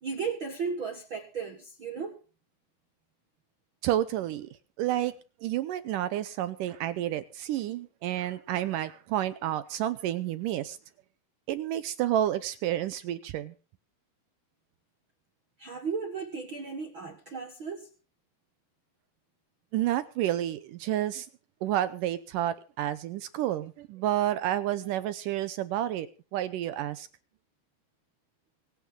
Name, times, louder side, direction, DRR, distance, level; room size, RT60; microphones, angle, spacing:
voice 1, 0.0-2.2 15.6-17.9, right 5 dB, 55° right, 1.4 m, -35 dB
voice 2, 3.8-4.5 4.8-5.1 5.4-10.8 11.5-13.5 19.7-21.3 21.6-27.1, right 12 dB, 75° right, 2.0 m, -30 dB
25.0 x 8.9 x 3.8 m
omnidirectional pair, 4.6 m